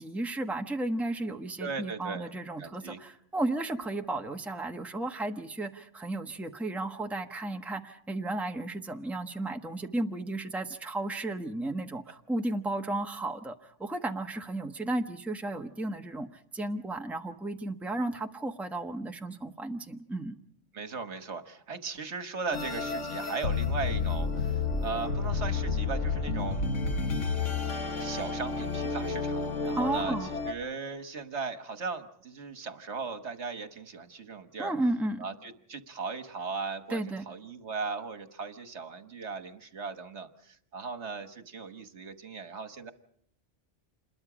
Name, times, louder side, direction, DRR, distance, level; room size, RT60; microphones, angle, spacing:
voice 1, 0.0-20.3 29.7-30.3 34.6-35.2 36.9-37.2, right 2 dB, ahead, 3 dB, 1.1 m, -34 dB
voice 2, 1.6-2.3 2.6-3.0 20.7-26.6 27.0-27.3 28.0-34.7 35.2-42.9, right 4 dB, 65° right, 8 dB, 1.6 m, -38 dB
sound 1, 22.5-30.5, left 4 dB, 85° left, 2.0 m, -31 dB
28.0 x 21.5 x 5.0 m, 0.69 s
omnidirectional pair, 1.3 m